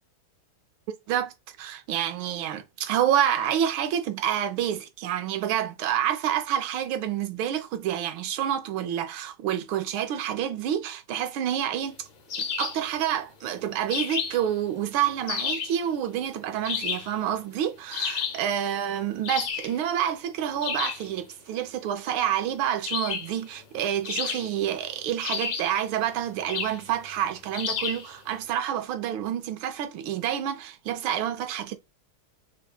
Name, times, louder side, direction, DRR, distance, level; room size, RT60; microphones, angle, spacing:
voice 1, 1.6-12.1 12.4-31.8, right 10 dB, 85° right, 1.5 m, -28 dB
sound 1, 12.3-12.9 13.9-14.5 15.3-15.8 16.6-17.2 17.9-18.5 19.2-19.8 20.6-21.1 22.8-23.4 24.0-24.7 25.2-25.8 26.5-26.8 27.5-28.1, left 6 dB, 50° left, 1.3 m, -31 dB
5.6 x 3.4 x 2.3 m
omnidirectional pair, 2.2 m